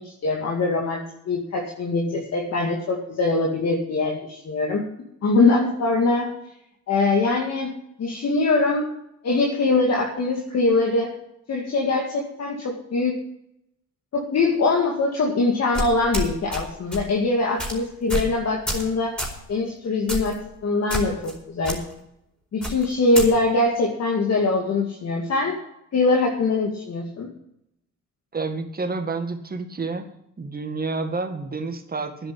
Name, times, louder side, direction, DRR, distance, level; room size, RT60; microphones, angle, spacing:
voice 1, 0.0-4.8 5.2-6.3 6.9-7.7 8.0-8.9 9.2-11.1 11.5-13.2 14.1-19.2 19.5-20.4 20.6-21.8 22.5-25.6 25.9-27.3, left 3 dB, 55° left, -1 dB, 2.3 m, -22 dB
sound 1, 15.7-16.6 16.9-17.1 17.6-17.7 18.1-18.3 18.7-18.9 19.2-19.4 20.1-20.4 20.9-21.3 21.6-21.8 22.6-23.3, equal, 5° left, 4.6 m, -28 dB
voice 2, 28.3-30.1 30.4-32.3, right 3 dB, 30° right, 6 dB, 1.9 m, -29 dB
10.0 x 8.7 x 8.5 m, 0.78 s
cardioid pair, 90°, 30 cm